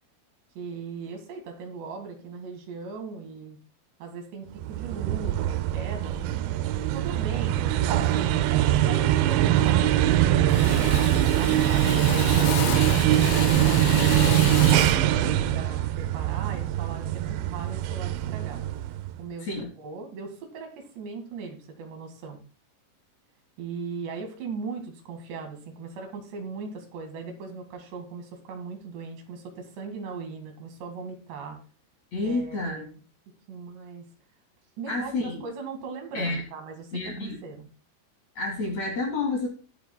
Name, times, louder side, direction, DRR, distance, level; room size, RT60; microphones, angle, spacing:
voice 1, 0.6-3.6 4.0-6.3 6.9-10.0 10.2-12.5 13.1-18.6 19.2-22.4 23.6-31.6 32.2-33.0 33.5-34.1 34.8-37.7, right 4 dB, 65° right, 4 dB, 4.0 m, -38 dB
sound 1, 4.6-19.1, right 13 dB, 85° right, 2.5 m, -23 dB
Drill, 8.2-8.4 8.8-9.3 9.6-10.1 10.5-15.1, left 15 dB, 85° left, 3.2 m, -33 dB
voice 2, 32.1-32.9 34.9-35.4 36.1-36.4 36.9-37.4 38.4-39.5, left 3 dB, 45° left, 0 dB, 2.5 m, -29 dB
20.0 x 7.2 x 2.3 m, 0.36 s
omnidirectional pair, 5.8 m